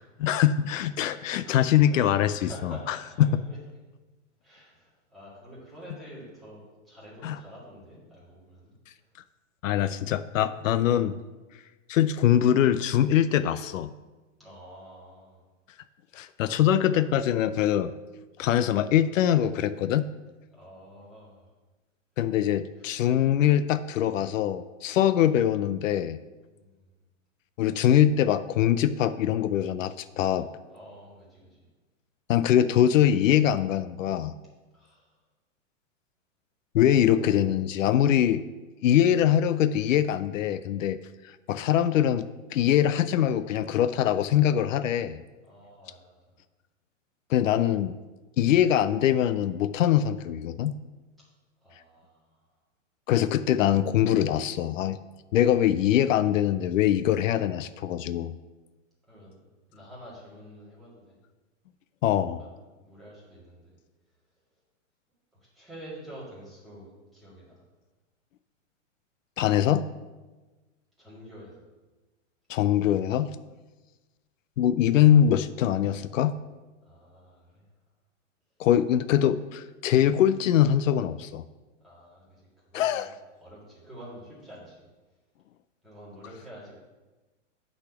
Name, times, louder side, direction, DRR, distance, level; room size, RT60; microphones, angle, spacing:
voice 1, 0.2-3.3 7.2-7.4 9.6-11.2 11.9-13.9 16.1-17.9 18.4-20.1 22.2-26.2 27.6-30.5 32.3-34.3 36.7-38.4 38.8-41.0 41.2-45.2 47.3-48.0 48.4-50.7 53.1-55.0 55.3-58.3 62.0-62.4 69.4-69.8 72.5-73.3 74.6-76.3 78.6-81.4 82.7-83.1, left 10 dB, 80° left, 13 dB, 0.5 m, -23 dB
voice 2, 1.0-1.6 1.9-3.6 4.4-8.8 14.4-15.4 20.5-21.5 22.8-22.9 26.5-26.9 30.7-31.7 34.7-35.2 45.4-46.4 51.6-52.4 59.1-59.4 59.7-61.2 62.4-63.8 65.4-67.6 71.0-71.7 76.8-77.7 81.8-82.4 82.7-83.1 83.4-84.9 85.8-86.7, equal, ahead, -9 dB, 1.9 m, -48 dB
8.7 x 4.2 x 5.8 m, 1.2 s
hypercardioid pair, 170°, 38 cm